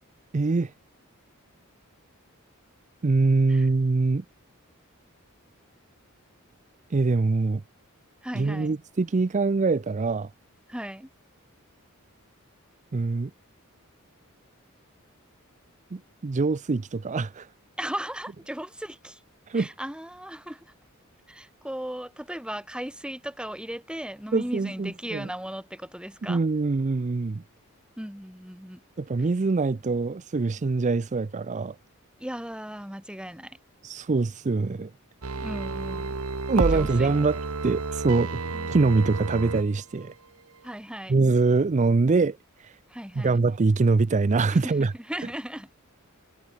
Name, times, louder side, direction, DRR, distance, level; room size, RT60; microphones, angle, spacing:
voice 1, 0.3-0.7 3.0-4.2 6.9-7.6 8.3-10.3 12.9-13.3 15.9-17.5 19.5-19.7 24.3-25.3 26.3-27.4 29.0-31.8 33.8-34.9 36.5-38.4 38.7-40.1 41.1-42.8 43.1-44.9, right 3 dB, 35° right, 0.5 m, -24 dB
voice 2, 8.2-8.7 10.7-11.1 17.8-19.2 19.5-20.7 21.3-26.4 28.0-28.8 32.2-33.6 35.4-36.2 36.7-37.1 40.6-41.1 42.9-43.4 44.6-45.7, equal, 5° right, 3.4 m, -37 dB
sound 1, 35.2-39.6 40.0-40.1, right 3 dB, 80° right, 1.2 m, -30 dB
head